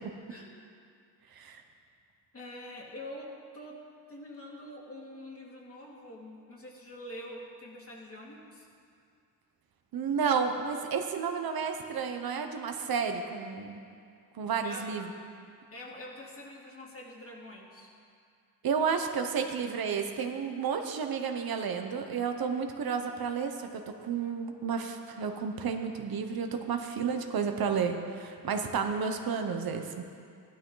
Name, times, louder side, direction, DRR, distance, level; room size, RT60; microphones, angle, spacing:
voice 1, 2.3-8.7 14.6-15.0 15.7-17.9, left 1 dB, 35° left, -3 dB, 2.5 m, -45 dB
voice 2, 9.9-13.8 14.3-15.1 18.6-29.9, right 6 dB, 65° right, 5 dB, 1.0 m, -31 dB
16.0 x 12.0 x 3.9 m, 2.3 s
cardioid pair, 115°, 39 cm